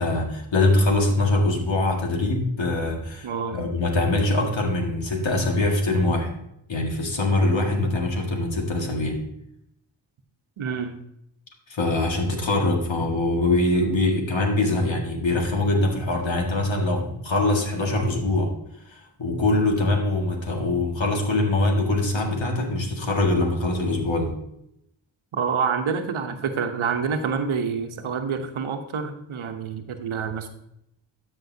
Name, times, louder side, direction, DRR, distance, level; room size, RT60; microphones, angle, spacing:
voice 1, 0.0-6.3 6.7-9.2 11.7-18.5 18.9-24.3, left 2 dB, 70° left, 1 dB, 2.0 m, -23 dB
voice 2, 3.2-3.6 10.6-11.0 25.3-30.5, right 6 dB, 85° right, 6 dB, 1.0 m, -27 dB
12.5 x 5.5 x 2.8 m, 0.78 s
cardioid pair, 40°, 48 cm